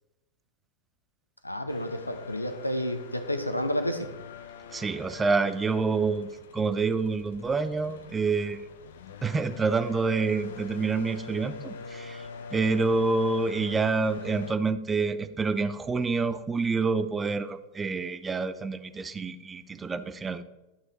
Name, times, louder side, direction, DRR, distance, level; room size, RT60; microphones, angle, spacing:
voice 1, 1.4-4.1, equal, 85° left, 8 dB, 0.9 m, -30 dB
sound 1, 1.7-14.5, left 4 dB, 60° left, 0.8 m, -44 dB
voice 2, 4.7-8.6 9.2-20.4, right 4 dB, 15° right, 13 dB, 0.6 m, -27 dB
11.5 x 6.3 x 4.4 m, 0.99 s
figure-of-eight pair, 90°, 0 cm